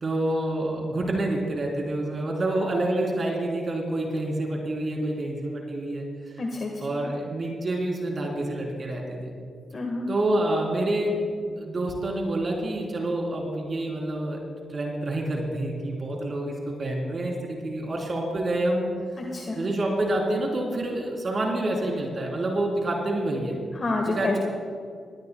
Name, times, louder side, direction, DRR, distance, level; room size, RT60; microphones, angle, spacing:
voice 1, 0.0-6.1 6.8-9.3 10.1-14.4 14.7-18.9 19.6-23.6 24.1-24.4, right 1 dB, 50° right, -1 dB, 3.6 m, -27 dB
voice 2, 6.4-7.0 9.7-10.1 19.3-19.6 23.7-24.4, left 2 dB, 50° left, 1 dB, 1.6 m, -29 dB
18.5 x 18.5 x 2.3 m, 2.2 s
supercardioid pair, 45°, 0 cm